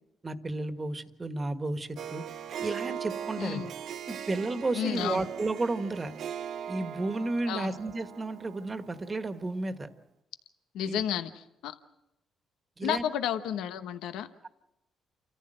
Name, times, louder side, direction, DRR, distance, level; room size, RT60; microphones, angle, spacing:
voice 1, 0.2-2.2 2.6-3.7 4.1-6.1 6.7-9.9 10.8-11.0 12.8-13.0, right 2 dB, 30° right, 9 dB, 1.6 m, -32 dB
Harp, 2.0-9.5, right 9 dB, 65° right, 0.7 m, -40 dB
voice 2, 3.4-3.7 4.7-5.3 7.5-7.7 10.7-11.3 11.6-11.7 12.8-14.5, left 10 dB, 85° left, 10 dB, 1.1 m, -32 dB
28.0 x 14.5 x 7.8 m, 0.88 s
cardioid pair, 75°, 0 cm